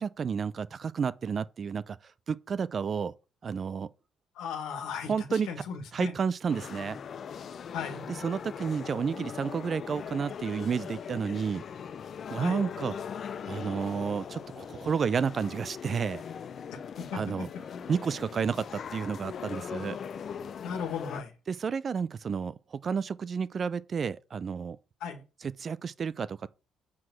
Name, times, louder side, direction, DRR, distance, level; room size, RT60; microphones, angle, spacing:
voice 1, 0.0-3.1 3.4-3.9 5.1-5.5 5.9-7.0 8.1-11.6 12.3-12.9 13.5-16.2 17.1-17.5 17.9-20.0 21.5-24.8 25.4-26.5, right 6 dB, 45° right, 0.5 m, -31 dB
voice 2, 4.4-6.1 7.7-8.1 12.3-12.6 16.7-17.5 17.7-17.8 19.3-19.5 20.6-21.3 25.0-25.2, left 6 dB, 85° left, 1.7 m, -37 dB
sound 1, 6.5-21.2, left 7 dB, 55° left, 0.5 m, -40 dB
5.9 x 4.7 x 6.2 m
cardioid pair, 80°, 0 cm